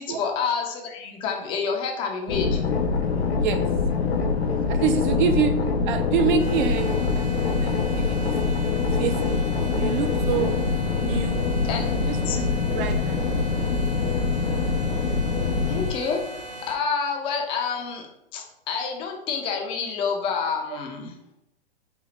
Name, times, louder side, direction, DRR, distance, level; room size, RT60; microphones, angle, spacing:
voice 1, 0.0-2.6 11.6-12.4 15.7-18.1 18.3-21.1, left 5 dB, 20° left, 2 dB, 0.4 m, -28 dB
sound 1, 2.3-15.9, left 4 dB, 90° left, 0.5 m, -24 dB
voice 2, 4.7-5.6 5.8-8.3 8.9-9.5 9.7-10.6 11.0-11.5 12.1-13.5 20.7-20.8, right 7 dB, 50° right, 8 dB, 0.4 m, -27 dB
sound 2, 6.4-16.7, right 1 dB, 90° right, 1.1 m, -39 dB
3.9 x 2.0 x 3.1 m, 0.81 s
hypercardioid pair, 120°, 31 cm